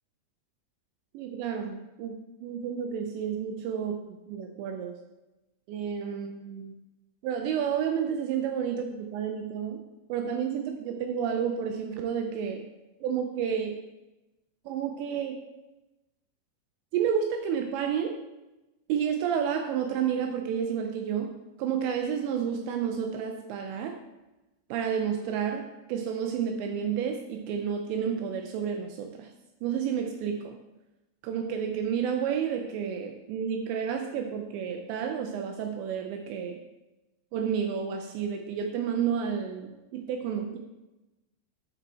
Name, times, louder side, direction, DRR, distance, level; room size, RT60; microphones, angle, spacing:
voice 1, 1.1-4.9 5.7-6.7 7.2-9.8 10.1-12.7 13.0-13.8 14.7-15.4 16.9-18.2 18.9-21.3 21.6-24.0 24.7-29.3 29.6-30.6 31.2-36.6 37.3-40.6, right 7 dB, 85° right, 4 dB, 2.5 m, -30 dB
11.0 x 5.5 x 4.2 m, 1.0 s
omnidirectional pair, 5.8 m